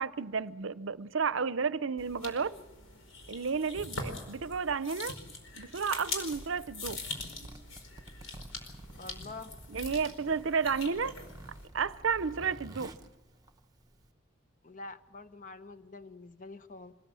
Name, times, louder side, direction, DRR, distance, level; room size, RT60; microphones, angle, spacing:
voice 1, 0.0-2.5 3.3-5.1 5.5-7.0 9.7-11.1 11.7-12.9, right 5 dB, 70° right, 0.6 m, -32 dB
sound 1, 2.0-11.7, left 3 dB, 75° left, 4.8 m, -43 dB
Zipper (clothing), 6.1-14.1, right 1 dB, 20° right, 1.0 m, -50 dB
voice 2, 9.0-9.5 14.6-16.9, left 3 dB, 40° left, 1.0 m, -46 dB
25.5 x 18.5 x 7.6 m
head